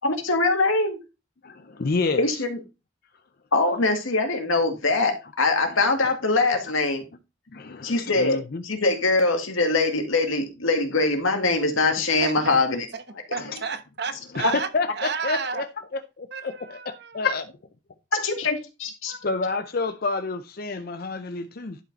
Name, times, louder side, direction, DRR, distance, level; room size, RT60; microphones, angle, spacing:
voice 1, 0.0-1.0 2.2-2.6 3.5-7.0 7.8-12.9 14.4-14.5 18.1-19.1, left 3 dB, 90° left, 2.0 m, -23 dB
voice 2, 1.4-2.4 5.7-5.8 7.5-8.6 13.4-13.6 14.3-15.6 16.4-16.8 17.1-17.4 19.1-21.8, left 3 dB, 50° left, 0.5 m, -29 dB
voice 3, 12.0-12.5 12.9-13.0 13.3-15.7 16.3-17.3, right 5 dB, 55° right, 1.1 m, -32 dB
11.0 x 5.0 x 4.0 m
head